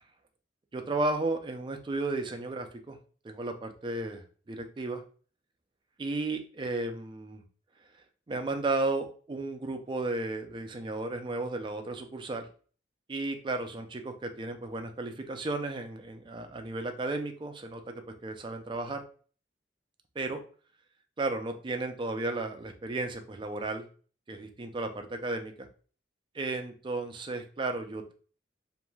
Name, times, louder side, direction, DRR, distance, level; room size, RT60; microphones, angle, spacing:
voice 1, 0.7-3.0 3.2-5.0 6.0-7.4 8.3-12.5 13.1-17.9 18.2-19.0 20.2-20.4 21.2-23.9 24.3-25.7 26.3-28.1, right 2 dB, 25° right, 6 dB, 0.4 m, -34 dB
3.1 x 2.5 x 2.2 m, 0.41 s
head